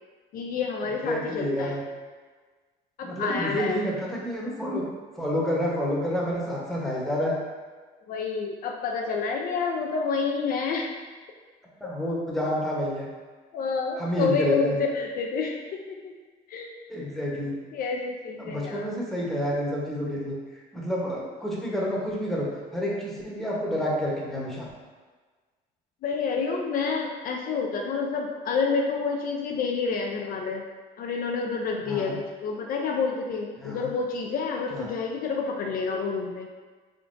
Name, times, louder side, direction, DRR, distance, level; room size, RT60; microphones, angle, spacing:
voice 1, 0.3-1.8 3.0-3.8 8.1-10.9 13.5-16.1 16.5-16.8 17.7-18.9 26.0-30.6 31.0-36.5, left 5 dB, 60° left, 1 dB, 0.4 m, -29 dB
voice 2, 1.0-1.8 3.0-4.9 5.2-7.3 11.8-13.1 14.0-14.8 16.9-17.5 18.4-20.4 20.7-22.5 22.7-24.7 31.9-32.1 33.6-33.9 34.7-34.9, equal, ahead, -5 dB, 0.9 m, -29 dB
3.6 x 3.4 x 2.5 m, 1.4 s
cardioid pair, 110°, 17 cm